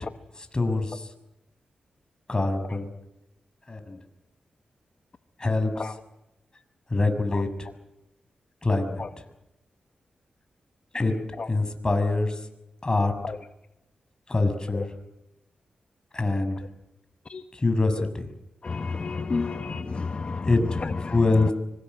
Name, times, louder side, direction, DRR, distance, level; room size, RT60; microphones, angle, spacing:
voice 1, 0.5-1.0 2.3-2.9 3.7-4.0 5.4-5.7 6.9-7.5 8.6-9.0 10.9-11.1 11.5-12.3 12.8-13.1 14.3-14.9 16.1-16.6 17.6-18.1 20.5-20.8 21.1-21.5, left 3 dB, 30° left, 7 dB, 6.5 m, -24 dB
voice 2, 18.6-21.5, left 4 dB, 45° left, 8 dB, 1.4 m, -31 dB
25.0 x 24.5 x 8.0 m, 0.89 s
cardioid pair, 60°, 3 cm